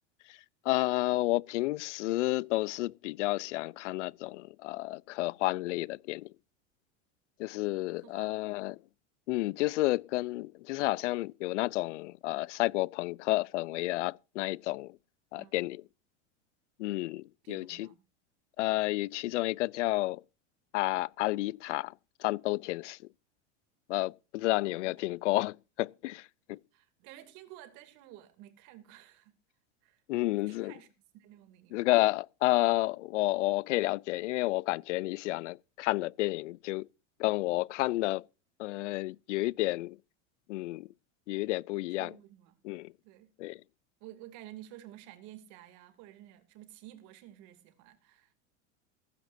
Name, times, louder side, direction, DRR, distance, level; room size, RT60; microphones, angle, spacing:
voice 1, 0.6-6.3 7.4-8.8 9.3-15.0 15.3-15.8 16.8-17.9 18.6-20.2 20.7-21.9 22.2-23.0 23.9-26.6 30.1-30.7 31.7-36.9 37.2-38.2 38.6-40.0 40.5-40.9 41.3-42.1 42.6-42.9 43.4-43.6, left 19 dB, 80° left, 0.6 m, -31 dB
voice 2, 7.9-8.3 15.4-15.7 17.4-18.0 24.6-25.2 26.7-29.4 29.8-30.9 31.1-31.9 42.0-42.6 43.0-43.3 44.0-48.3, right 13 dB, 55° right, 2.7 m, -52 dB
17.0 x 15.5 x 2.7 m
supercardioid pair, 125°, 35 cm